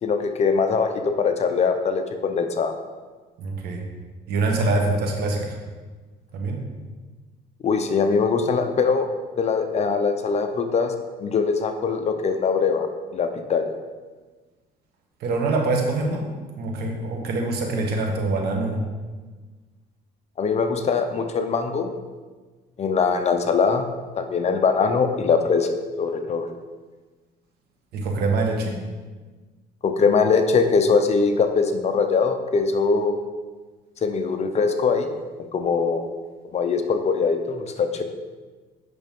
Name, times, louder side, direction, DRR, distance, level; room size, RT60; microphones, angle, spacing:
voice 1, 0.0-2.7 7.6-9.1 9.4-10.9 11.2-12.9 13.1-13.7 20.4-21.9 22.8-25.7 26.0-26.5 29.8-33.2 34.0-35.1 35.5-36.0 36.5-38.0, left 5 dB, 40° left, 7 dB, 0.7 m, -22 dB
voice 2, 3.4-3.8 4.3-5.6 6.3-6.6 15.2-16.3 16.6-18.8 27.9-28.7, right 2 dB, 70° right, 1 dB, 1.5 m, -24 dB
8.0 x 6.0 x 3.7 m, 1.3 s
cardioid pair, 110°, 17 cm